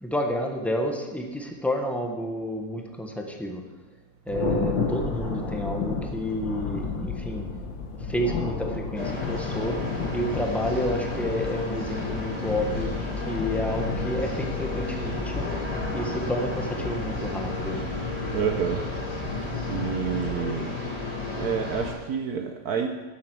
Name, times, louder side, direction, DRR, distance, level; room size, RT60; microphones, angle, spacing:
voice 1, 0.0-3.6 4.3-7.5 8.0-9.8 10.1-15.4 15.9-17.9, equal, ahead, 2 dB, 1.0 m, -30 dB
Thunder, 4.3-20.3, left 4 dB, 85° left, 2.1 m, -33 dB
sound 1, 8.9-21.9, left 3 dB, 20° left, 3.1 m, -32 dB
voice 2, 18.3-18.8 19.7-20.7 21.4-22.9, right 7 dB, 65° right, 5 dB, 1.2 m, -28 dB
12.0 x 7.6 x 6.1 m, 1.2 s
omnidirectional pair, 2.0 m